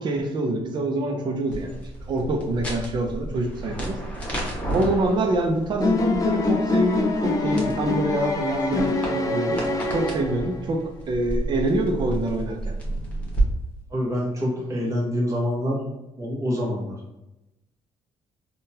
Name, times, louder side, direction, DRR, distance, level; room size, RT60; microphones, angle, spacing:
voice 1, 0.0-1.7 2.1-4.0 4.7-9.6 9.9-12.8, right 2 dB, 45° right, 3 dB, 0.5 m, -25 dB
sound 1, 1.5-13.4, right 1 dB, 10° left, 1.0 m, -32 dB
sound 2, 5.8-10.7, left 3 dB, 30° left, 0.4 m, -25 dB
voice 2, 13.9-15.8 16.2-17.0, equal, 30° right, -4 dB, 1.1 m, -26 dB
3.7 x 2.2 x 2.7 m, 0.96 s
cardioid pair, 105°, 11 cm